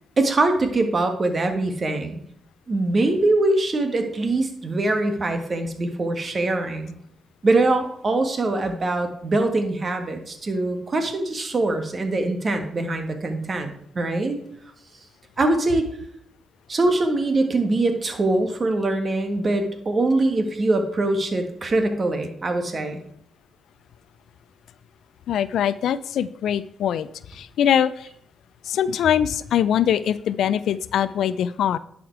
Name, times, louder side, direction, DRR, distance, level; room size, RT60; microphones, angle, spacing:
voice 1, 0.2-2.2 2.7-6.9 7.4-14.4 15.4-15.9 16.7-23.0, right 2 dB, 40° right, 6 dB, 1.6 m, -23 dB
voice 2, 25.3-28.1 28.7-31.8, left 9 dB, 80° left, 16 dB, 0.4 m, -22 dB
11.0 x 5.1 x 4.6 m, 0.67 s
cardioid pair, 70°, 0 cm